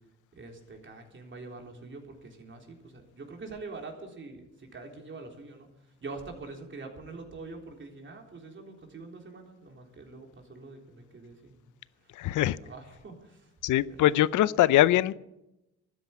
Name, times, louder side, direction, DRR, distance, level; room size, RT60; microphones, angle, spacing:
voice 1, 0.3-12.1 12.6-13.5 13.9-14.1, right 3 dB, 40° right, 3.7 m, -45 dB
voice 2, 12.1-12.6 13.6-15.1, left 14 dB, 80° left, 0.6 m, -22 dB
13.0 x 10.0 x 9.4 m
cardioid pair, 90°, 30 cm